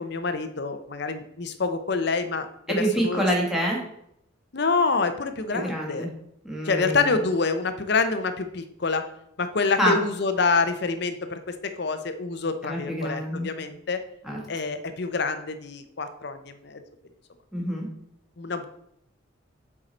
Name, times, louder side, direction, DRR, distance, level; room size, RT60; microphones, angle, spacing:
voice 1, 0.0-3.2 4.5-6.1 6.6-9.1 9.4-14.0 14.5-16.8 18.4-18.7, left 4 dB, 55° left, 9 dB, 0.7 m, -27 dB
voice 2, 2.7-3.8 5.5-6.1 6.4-7.2 9.8-10.0 12.6-13.5 14.2-14.4 17.5-17.9, equal, ahead, -2 dB, 1.7 m, -26 dB
7.5 x 4.7 x 4.3 m, 0.73 s
head